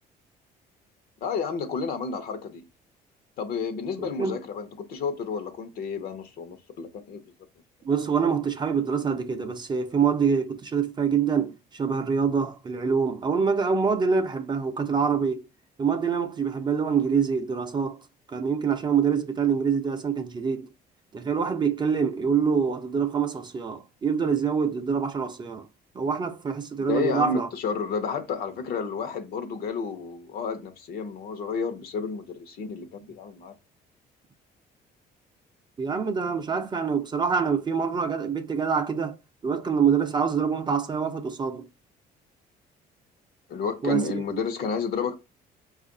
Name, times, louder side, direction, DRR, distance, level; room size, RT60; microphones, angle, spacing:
voice 1, 1.2-2.6 3.4-7.3 26.9-33.6 43.5-45.1, left 5 dB, 65° left, 0.8 m, -31 dB
voice 2, 4.0-4.4 7.8-15.4 15.8-18.0 18.3-20.7 21.1-25.7 25.9-27.5 35.8-39.2 39.4-41.6 43.8-44.2, right 6 dB, 25° right, 0.5 m, -25 dB
4.5 x 2.4 x 3.8 m
cardioid pair, 110°, 17 cm